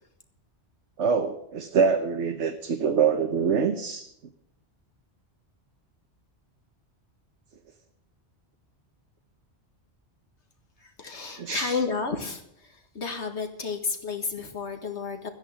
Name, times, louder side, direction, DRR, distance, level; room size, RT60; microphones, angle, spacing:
voice 1, 1.0-4.1 11.4-11.7, right 6 dB, 75° right, 5 dB, 1.3 m, -25 dB
voice 2, 10.8-15.3, left 4 dB, 75° left, 5 dB, 2.1 m, -32 dB
14.0 x 10.5 x 7.4 m, 0.74 s
omnidirectional pair, 1.2 m